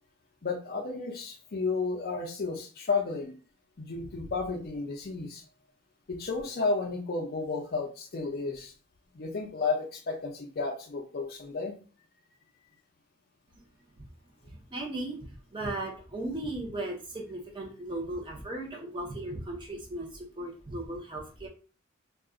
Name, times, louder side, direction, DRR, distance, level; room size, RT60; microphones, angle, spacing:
voice 1, 0.4-3.4 3.8-5.4 6.1-8.7 9.1-11.8, left 4 dB, 45° left, 3 dB, 0.5 m, -32 dB
voice 2, 14.5-21.5, right 1 dB, 25° right, 0 dB, 0.7 m, -37 dB
2.4 x 2.2 x 3.6 m, 0.38 s
head